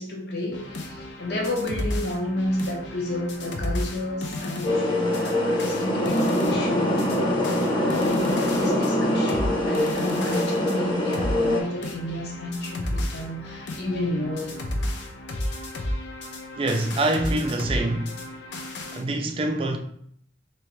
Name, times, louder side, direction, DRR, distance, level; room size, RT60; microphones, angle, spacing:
voice 1, 0.0-7.0 7.7-14.6, left 1 dB, 70° left, 0.9 m, -31 dB
sound 1, 0.5-19.0, left 1 dB, 90° left, 0.5 m, -33 dB
sound 2, 4.6-11.6, left 1 dB, 25° left, 0.6 m, -24 dB
voice 2, 16.6-18.2 18.9-19.8, right 2 dB, 30° right, 0.4 m, -25 dB
3.3 x 2.8 x 3.0 m
head